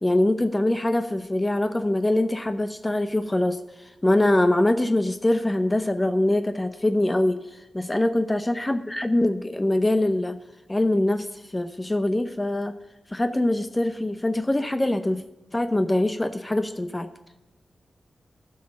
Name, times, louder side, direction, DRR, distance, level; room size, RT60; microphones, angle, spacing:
voice 1, 0.0-3.6 4.0-7.4 7.7-10.4 10.7-11.3 11.5-12.7 13.1-15.2 15.5-17.1, left 1 dB, 20° left, 9 dB, 0.7 m, -23 dB
15.0 x 5.4 x 6.0 m, 0.94 s
cardioid pair, 45°, 0 cm